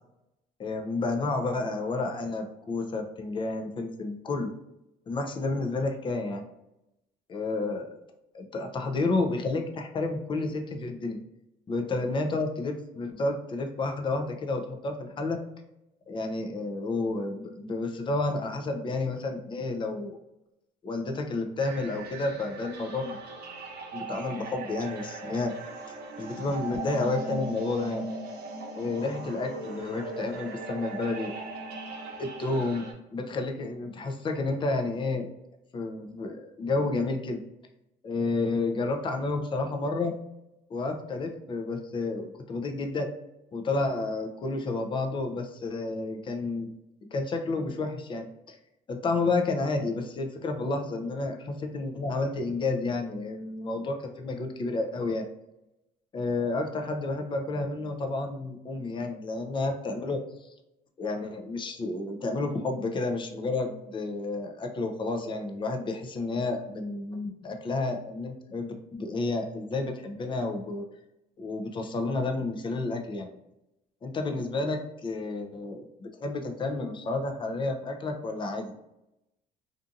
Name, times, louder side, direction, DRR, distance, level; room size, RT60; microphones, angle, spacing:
voice 1, 0.6-4.5 5.1-6.4 7.3-7.9 8.3-11.2 11.7-15.4 16.1-20.2 20.8-23.2 23.9-25.5 25.9-28.0 28.7-31.3 32.2-32.9 33.1-35.3 35.7-37.4 38.0-40.1 40.7-43.1 43.5-46.7 47.1-48.6 48.9-55.2 56.1-60.5 61.0-70.8 71.4-73.3 74.0-78.7, left 3 dB, 30° left, 4 dB, 0.4 m, -30 dB
sound 1, 21.6-32.9, right 2 dB, 65° right, 0.7 m, -39 dB
2.6 x 2.5 x 2.4 m, 0.89 s
cardioid pair, 110°, 17 cm